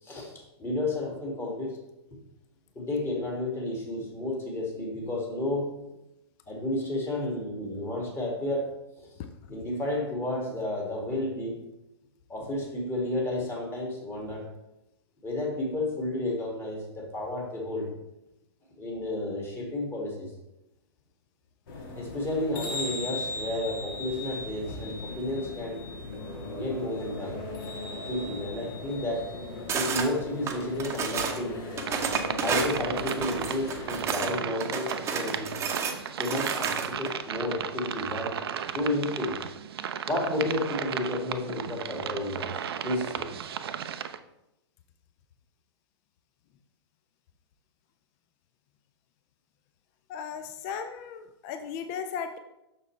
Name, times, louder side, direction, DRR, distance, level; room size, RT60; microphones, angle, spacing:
voice 1, 0.0-1.8 2.8-5.7 6.5-9.1 9.5-11.6 12.3-14.4 15.2-17.9 18.8-20.3 21.9-25.8 26.5-27.4 28.1-29.3 29.7-31.6 32.4-35.5 36.2-39.4 40.1-43.3, left 1 dB, 15° left, -2 dB, 2.0 m, -32 dB
sound 1, 21.7-34.0, left 2 dB, 55° left, 1.5 m, -38 dB
sound 2, 29.7-30.1 30.5-31.4 31.8-34.3 34.6-37.1, right 5 dB, 20° right, 0.8 m, -31 dB
sound 3, 31.8-44.2, right 8 dB, 65° right, 0.5 m, -35 dB
voice 2, 50.1-52.4, left 7 dB, 35° left, 8 dB, 0.5 m, -36 dB
6.4 x 6.2 x 3.2 m, 0.90 s
figure-of-eight pair, 110°, 14 cm